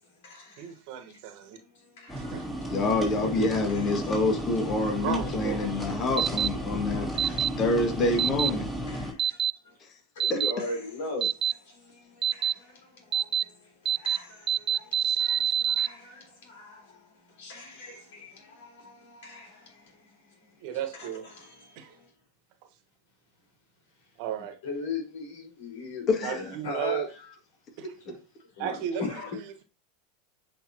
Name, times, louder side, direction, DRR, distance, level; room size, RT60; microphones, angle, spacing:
voice 1, 0.0-0.8 1.5-2.9 3.2-4.2 4.6-5.1 5.5-6.1 7.1-7.5 8.0-8.1 8.9-9.8 10.1-22.1 24.0-24.1 24.4-27.3 28.0-28.2 28.4-29.4, left 3 dB, 65° left, 4.1 m, -41 dB
voice 2, 0.6-1.6 2.1-2.5 5.0-5.8 20.6-21.3 21.8-21.9 24.2-24.6 26.2-27.1 27.8-27.9 28.6-29.0, right 10 dB, 55° right, 1.3 m, -34 dB
sound 1, 2.1-9.1, equal, 10° left, 3.5 m, -34 dB
voice 3, 2.7-8.7 10.3-10.4 26.1-26.4 27.8-27.9, left 2 dB, 35° left, 2.0 m, -27 dB
sound 2, 6.2-6.5 7.2-7.5 8.2-8.5 9.2-9.5 10.2-10.5 11.2-11.5 12.2-12.5 13.1-13.4 13.8-14.2 14.5-15.9, right 9 dB, 35° right, 0.4 m, -25 dB
8.5 x 5.3 x 2.8 m
hypercardioid pair, 85°, 0 cm